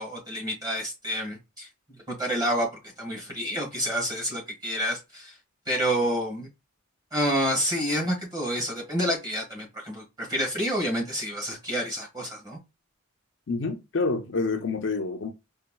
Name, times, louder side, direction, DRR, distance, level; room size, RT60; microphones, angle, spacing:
voice 1, 0.0-1.7 2.1-2.7 3.0-5.4 5.7-6.5 7.1-12.6, equal, 20° right, 1.3 m, -28 dB
voice 2, 13.5-15.3, left 3 dB, 55° left, 0.5 m, -28 dB
4.1 x 2.2 x 2.2 m
head